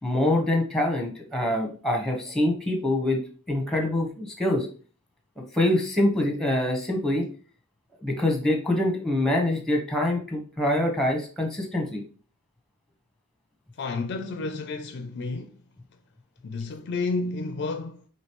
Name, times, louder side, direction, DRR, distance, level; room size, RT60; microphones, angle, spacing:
voice 1, 0.0-3.2 3.5-4.7 5.5-7.3 8.0-12.0, left 1 dB, ahead, 0.9 m, -25 dB
voice 2, 13.8-15.6 16.4-18.1, left 3 dB, 50° left, 0.4 m, -31 dB
5.1 x 3.0 x 3.0 m
head